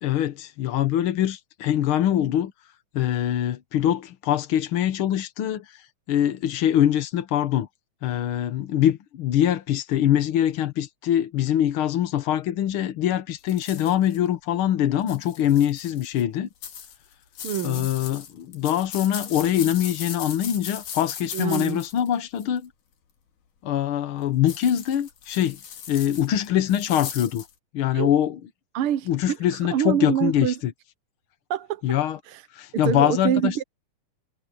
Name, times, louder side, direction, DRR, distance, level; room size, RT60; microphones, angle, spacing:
voice 1, 0.0-2.5 2.9-7.7 8.0-16.5 17.6-22.7 23.6-25.6 25.9-27.5 27.7-28.4 29.1-30.7 31.8-32.2 32.5-33.6, left 11 dB, 65° left, 1.3 m, -23 dB
sound 1, 13.5-14.2 15.0-16.2 16.6-22.6 24.5-27.5, left 8 dB, 90° left, 3.7 m, -38 dB
voice 2, 17.4-17.9 21.3-21.8 27.9-28.1 28.7-29.4 29.6-30.5 31.5-31.8 32.7-33.6, right 10 dB, 65° right, 1.4 m, -25 dB
omnidirectional pair, 3.6 m